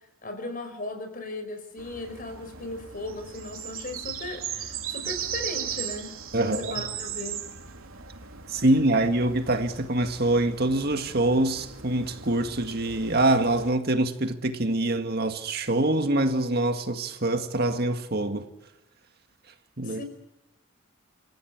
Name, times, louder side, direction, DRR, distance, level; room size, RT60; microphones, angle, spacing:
voice 1, 0.2-7.4 19.8-20.0, left 2 dB, 40° left, 5.2 m, -37 dB
sound 1, 1.8-13.7, right 8 dB, 85° right, 3.3 m, -38 dB
voice 2, 6.3-6.7 8.5-18.5 19.8-20.0, right 2 dB, 50° right, 1.9 m, -25 dB
28.5 x 15.5 x 8.8 m
head